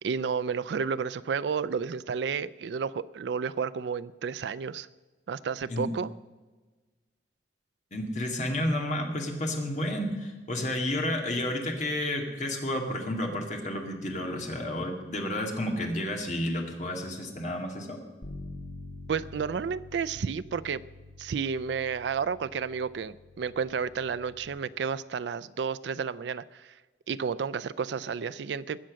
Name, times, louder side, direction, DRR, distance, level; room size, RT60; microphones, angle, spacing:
voice 1, 0.0-4.9 5.3-6.1 19.1-20.8 21.2-26.8 27.1-28.8, right 6 dB, 70° right, 15 dB, 0.4 m, -31 dB
voice 2, 7.9-18.0, left 1 dB, 40° left, 2 dB, 2.1 m, -31 dB
Bass guitar, 18.2-24.5, left 2 dB, 80° left, 1.5 m, -46 dB
20.5 x 7.5 x 6.3 m, 1.3 s
head